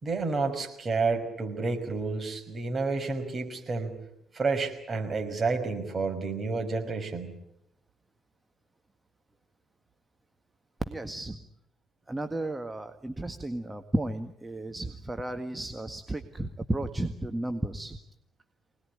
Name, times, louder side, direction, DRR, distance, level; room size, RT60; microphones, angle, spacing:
voice 1, 0.0-3.9 4.3-7.3, right 4 dB, 35° right, 5 dB, 5.8 m, -30 dB
voice 2, 10.9-11.4 12.1-18.0, right 1 dB, 15° right, 7 dB, 1.7 m, -33 dB
25.0 x 19.5 x 8.8 m, 0.77 s
figure-of-eight pair, 45°, 0 cm